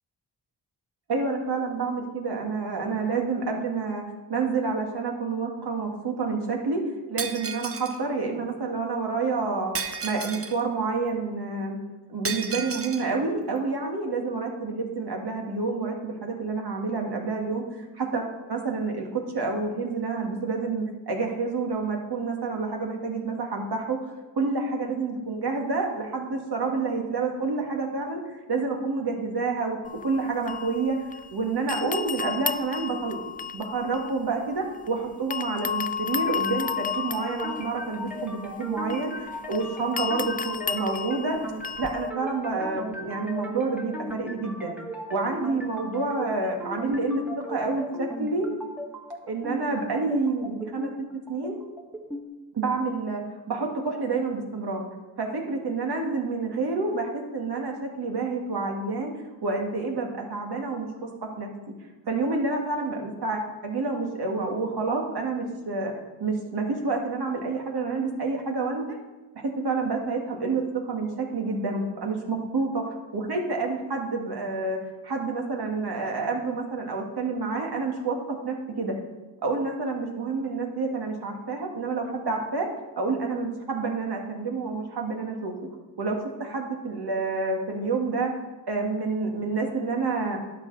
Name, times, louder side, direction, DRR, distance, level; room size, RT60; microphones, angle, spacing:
voice 1, 1.1-4.0 4.3-6.8 7.1-9.7 10.0-11.8 12.1-24.0 24.3-31.0 31.3-33.2 33.5-41.4 41.8-44.8 45.1-47.2 47.5-48.5 49.3-50.9 51.3-51.5 52.5-53.2 53.5-54.8 55.2-59.1 59.4-61.1 61.4-61.5 62.1-65.9 66.2-69.0 69.4-79.0 79.4-82.7 83.0-85.5 86.0-88.3 88.7-90.4, right 3 dB, 60° right, 1 dB, 2.1 m, -28 dB
Shatter, 7.2-8.0 9.7-10.6 12.2-13.1, right 5 dB, 30° right, 0.9 m, -33 dB
sound 1, 29.8-31.3 31.7-34.9 35.3-42.1, left 7 dB, 20° left, 0.4 m, -33 dB
sound 2, 36.3-52.3, equal, 5° right, 1.7 m, -37 dB
11.0 x 6.9 x 4.1 m, 1.2 s
cardioid pair, 50°, 44 cm